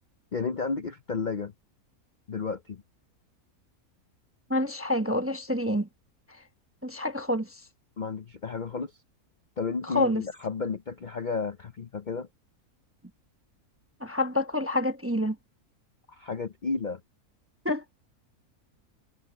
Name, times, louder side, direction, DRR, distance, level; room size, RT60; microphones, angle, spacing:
voice 1, 0.3-1.5 2.3-2.8 8.0-8.9 9.6-12.3 16.1-17.0, left 4 dB, 45° left, 0.6 m, -32 dB
voice 2, 4.5-5.9 6.8-7.6 9.9-10.2 14.0-15.4 17.6-17.8, left 1 dB, 10° right, 0.8 m, -27 dB
omnidirectional pair, 1.6 m